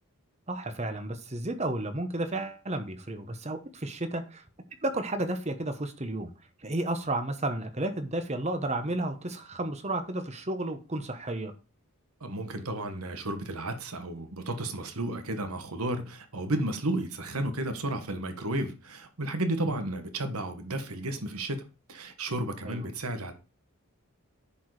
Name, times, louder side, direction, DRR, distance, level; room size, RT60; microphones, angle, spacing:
voice 1, 0.5-4.4 4.8-6.3 6.6-11.5 22.6-22.9, right 1 dB, 30° right, 1.1 m, -32 dB
voice 2, 12.2-21.6 21.9-23.3, right 1 dB, 80° right, 1.4 m, -33 dB
10.0 x 4.7 x 4.9 m
head